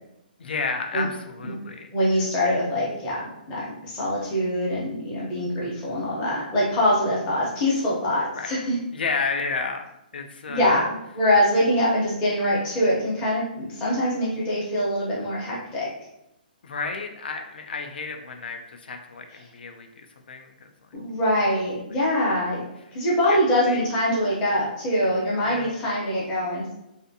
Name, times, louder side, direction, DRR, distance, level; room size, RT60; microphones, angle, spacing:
voice 1, 0.4-1.9 5.6-6.0 8.3-8.5 8.9-10.8 16.6-20.7 23.3-23.4 23.7-23.8 25.4-25.7, left 4 dB, 80° left, 4 dB, 0.4 m, -32 dB
voice 2, 1.9-8.8 10.5-10.8 11.1-15.9 20.9-22.6 22.9-26.7, left 1 dB, 15° left, -6 dB, 0.6 m, -24 dB
2.5 x 2.4 x 2.6 m, 0.85 s
hypercardioid pair, 175°, 5 cm